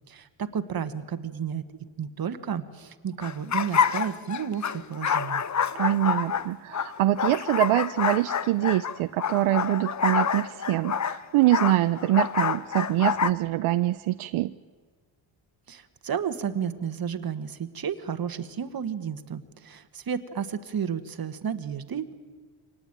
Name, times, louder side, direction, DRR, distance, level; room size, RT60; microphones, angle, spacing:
voice 1, 0.1-1.6 2.0-5.4 15.7-22.1, right 7 dB, 45° right, 11 dB, 1.6 m, -32 dB
sound 1, 3.2-13.3, left 7 dB, 35° left, 0.8 m, -27 dB
voice 2, 5.7-14.5, right 15 dB, 80° right, 12 dB, 0.7 m, -24 dB
24.5 x 19.0 x 9.0 m, 1.5 s
cardioid pair, 75°, 49 cm